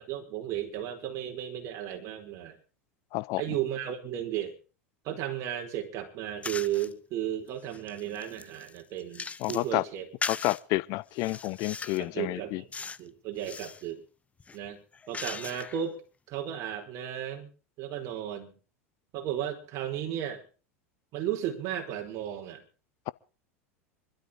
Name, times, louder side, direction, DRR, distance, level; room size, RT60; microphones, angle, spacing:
voice 1, 0.0-2.6 3.4-4.6 5.0-10.1 12.0-14.0 14.5-14.8 15.1-16.0 16.3-17.5 17.8-18.5 19.1-20.4 21.1-22.6, right 10 dB, 50° right, 4.8 m, -34 dB
sound 1, 6.4-6.9 7.5-9.7 10.2-10.6 11.1-12.1 12.7-13.1 13.4-13.8 14.4-15.9, left 5 dB, 20° left, 0.8 m, -39 dB
voice 2, 9.4-9.8 10.3-12.6, left 20 dB, 50° left, 0.7 m, -30 dB
25.0 x 13.0 x 3.8 m
hypercardioid pair, 90°, 7 cm